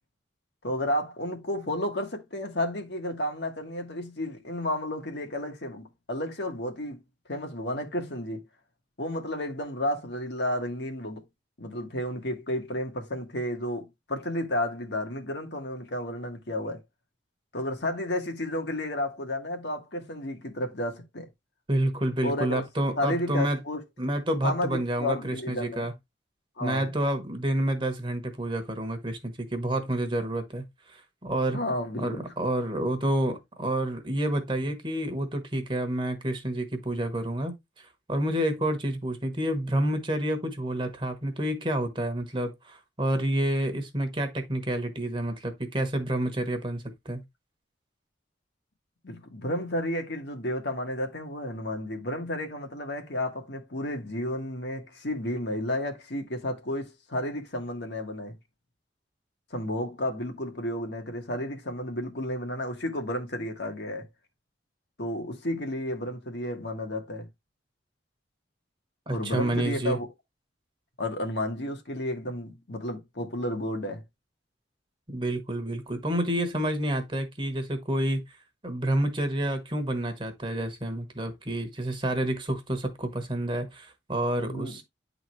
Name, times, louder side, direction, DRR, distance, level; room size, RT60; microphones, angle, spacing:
voice 1, 0.6-7.0 7.3-8.4 9.0-11.2 11.6-16.8 17.5-21.3 22.2-22.6 23.0-23.8 24.4-25.9 26.6-26.9 31.5-32.2 49.0-58.3 59.5-64.1 65.0-67.3 69.1-70.1 71.0-74.0 84.4-84.8, left 1 dB, 70° left, 1.5 m, -32 dB
voice 2, 21.7-23.6 24.0-25.9 26.6-31.6 32.0-47.2 69.1-70.0 75.1-78.2 78.6-84.8, right 1 dB, 25° right, 1.1 m, -29 dB
9.6 x 4.0 x 3.1 m
head